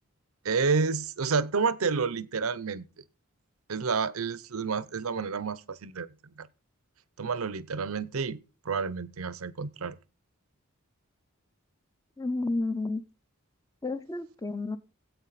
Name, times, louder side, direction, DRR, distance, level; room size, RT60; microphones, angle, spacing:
voice 1, 0.4-2.8 3.7-6.1 6.4-6.5 7.2-8.4 8.6-10.0, right 5 dB, 85° right, 0.7 m, -29 dB
voice 2, 12.2-13.0 13.8-14.8, left 2 dB, 15° left, 0.6 m, -31 dB
17.0 x 8.3 x 4.1 m
head